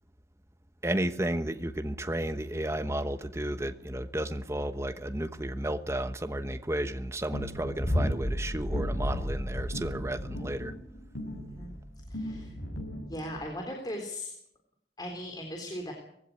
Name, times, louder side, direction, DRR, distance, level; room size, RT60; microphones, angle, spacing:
voice 1, 0.8-10.7, right 1 dB, 15° right, 1.1 m, -32 dB
sound 1, 7.3-13.5, equal, 75° left, 6.6 m, -34 dB
voice 2, 12.1-12.5 13.1-14.3 15.0-15.9, left 1 dB, 20° left, 3.7 m, -38 dB
20.5 x 16.5 x 9.5 m
head